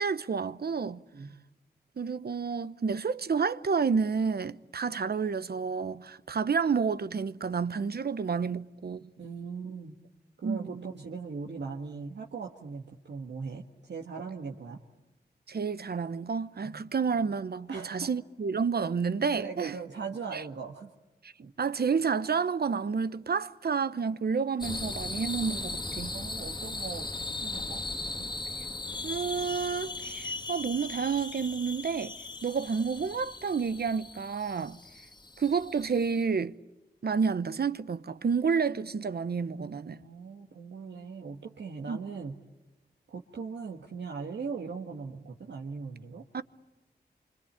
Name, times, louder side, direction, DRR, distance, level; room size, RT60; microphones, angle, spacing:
voice 1, 0.0-1.0 2.0-9.1 10.4-10.8 15.5-19.7 20.3-20.4 21.2-21.3 21.6-26.2 29.0-32.1 32.4-34.8 35.4-36.5 37.0-40.0 41.9-42.0 46.3-46.4, right 5 dB, 65° right, 0.9 m, -30 dB
voice 2, 9.2-10.0 10.4-14.8 16.6-16.9 17.7-18.1 19.4-20.9 21.4-21.5 26.1-27.8 28.1-28.3 39.9-42.4 43.1-46.3, right 5 dB, 85° right, 1.6 m, -39 dB
sound 1, 24.6-36.2, left 3 dB, 25° left, 1.5 m, -38 dB
26.0 x 25.5 x 8.8 m
cardioid pair, 60°, 18 cm